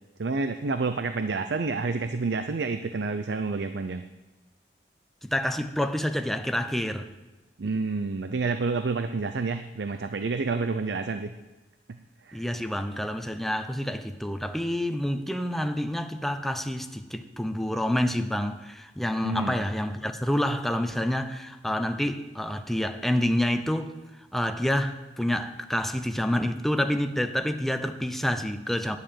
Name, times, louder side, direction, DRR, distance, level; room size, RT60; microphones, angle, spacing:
voice 1, 0.2-4.0 7.6-11.3 12.2-12.4 19.2-19.6, right 4 dB, 70° right, 9 dB, 0.5 m, -29 dB
voice 2, 5.2-7.1 12.3-23.9 24.3-29.0, left 1 dB, ahead, 7 dB, 0.6 m, -28 dB
10.5 x 6.7 x 9.0 m, 1.1 s
head